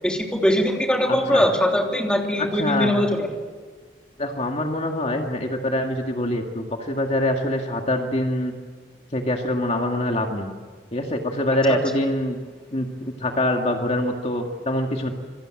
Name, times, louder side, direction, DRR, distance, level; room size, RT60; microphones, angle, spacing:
voice 1, 0.0-3.3 11.7-11.8, left 1 dB, 5° left, 1 dB, 3.2 m, -21 dB
voice 2, 1.1-1.4 2.4-3.0 4.2-8.5 9.1-10.5 10.9-12.4 12.7-12.9 13.2-15.1, left 1 dB, 35° left, 2 dB, 2.1 m, -24 dB
27.5 x 24.0 x 7.9 m, 1.5 s
head